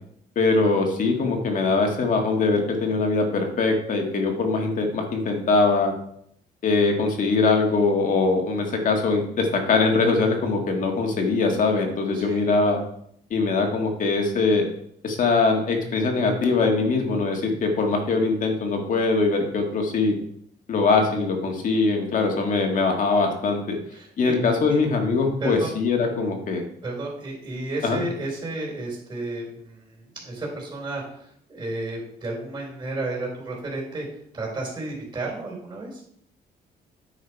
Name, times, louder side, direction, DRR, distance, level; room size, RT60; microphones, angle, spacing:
voice 1, 0.4-5.9 6.6-12.8 13.3-14.6 15.0-20.2 20.7-23.8 24.2-26.6 27.8-28.0, left 3 dB, 55° left, 2 dB, 1.8 m, -22 dB
voice 2, 12.1-12.4 23.9-24.4 24.7-24.8 25.4-25.7 26.8-34.1 34.3-36.0, right 2 dB, 25° right, -2 dB, 3.8 m, -32 dB
9.4 x 5.1 x 4.7 m, 0.69 s
cardioid pair, 125°, 16 cm